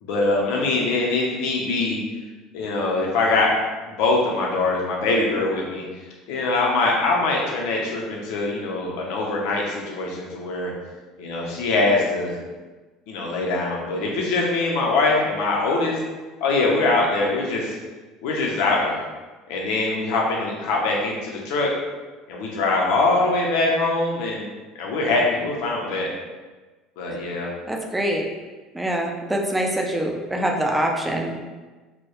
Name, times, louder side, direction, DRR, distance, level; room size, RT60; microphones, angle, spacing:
voice 1, 0.0-2.0 2.5-3.5 3.9-5.8 6.3-10.7 11.2-12.4 13.1-16.0 16.4-17.8 18.2-19.0 19.5-21.7 22.3-24.5 24.8-26.1 27.0-27.5, left 3 dB, 65° left, -2 dB, 0.6 m, -23 dB
voice 2, 27.7-28.3 28.7-31.4, right 1 dB, 10° right, 1 dB, 0.4 m, -24 dB
2.2 x 2.0 x 2.9 m, 1.3 s
figure-of-eight pair, 65°, 0 cm